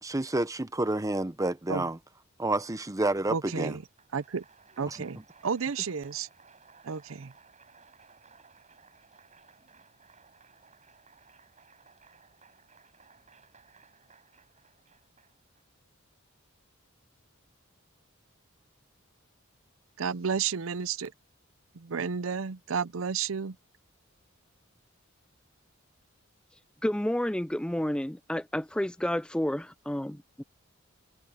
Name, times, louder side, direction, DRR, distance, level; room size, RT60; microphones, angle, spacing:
voice 1, 0.0-2.0 2.4-3.7, right 2 dB, 15° right, 0.8 m, -29 dB
voice 2, 3.3-3.8 4.1-4.4 4.8-6.3 6.8-7.3 20.0-21.1 21.7-23.6, right 6 dB, 75° right, 0.6 m, -32 dB
Applause, 3.8-15.6, right 5 dB, 35° right, 7.6 m, -59 dB
voice 3, 26.8-30.4, left 1 dB, 5° left, 0.4 m, -30 dB
head